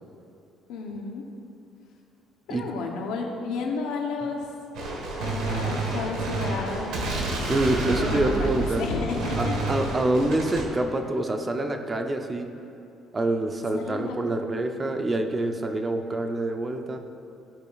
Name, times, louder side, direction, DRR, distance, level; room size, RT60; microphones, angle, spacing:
voice 1, 0.7-1.2 2.5-4.5 5.2-7.3 7.8-9.5 13.7-14.2, left 4 dB, 90° left, 0 dB, 0.8 m, -32 dB
voice 2, 2.5-2.8 7.5-8.9 9.4-12.5 13.1-17.0, right 2 dB, 25° right, 5 dB, 0.6 m, -26 dB
Gunshot gunfire, 4.7-10.6, right 2 dB, 75° right, 1.3 m, -29 dB
14.5 x 5.0 x 2.4 m, 2.5 s
cardioid pair, 115°, 0 cm